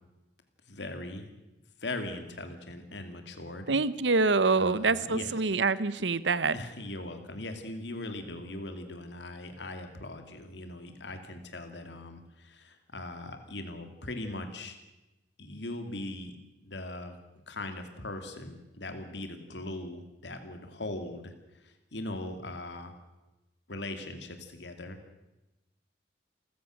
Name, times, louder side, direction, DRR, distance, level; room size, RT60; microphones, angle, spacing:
voice 1, 0.7-1.3 1.8-3.8 4.5-5.3 6.0-6.1 6.5-14.8 15.4-16.3 16.6-17.1 17.5-21.3 21.6-22.9 23.7-25.0, left 2 dB, 75° left, 7 dB, 2.6 m, -40 dB
voice 2, 3.7-6.6, right 4 dB, 85° right, 17 dB, 1.0 m, -26 dB
29.0 x 15.5 x 6.5 m, 1.0 s
head